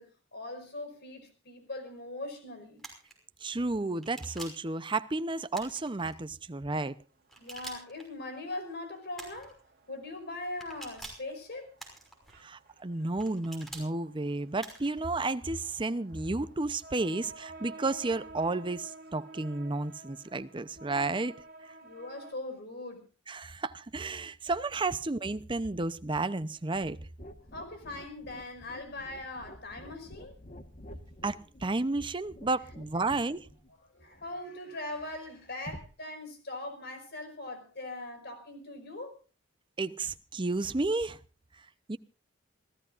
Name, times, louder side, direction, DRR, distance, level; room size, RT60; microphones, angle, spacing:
voice 1, 0.0-2.8 7.4-9.6 9.9-11.7 21.8-23.1 27.5-30.4 33.9-39.2, left 2 dB, 55° left, 5.2 m, -41 dB
sound 1, 2.8-3.1 4.0-4.7 5.5-6.1 7.3-8.1 9.2-9.5 10.6-11.3 11.8-12.4 13.2-13.9 14.6-15.0, right 2 dB, ahead, 5.7 m, -46 dB
voice 2, 3.4-7.0 12.4-21.4 21.6-21.7 23.3-27.0 31.2-33.5 39.8-41.2 41.9-42.0, right 3 dB, 25° right, 0.7 m, -32 dB
sound 2, 6.9-22.3, right 3 dB, 50° right, 2.2 m, -53 dB
sound 3, 27.2-34.7 35.7-35.9, equal, 40° left, 1.5 m, -50 dB
27.5 x 15.5 x 2.6 m
head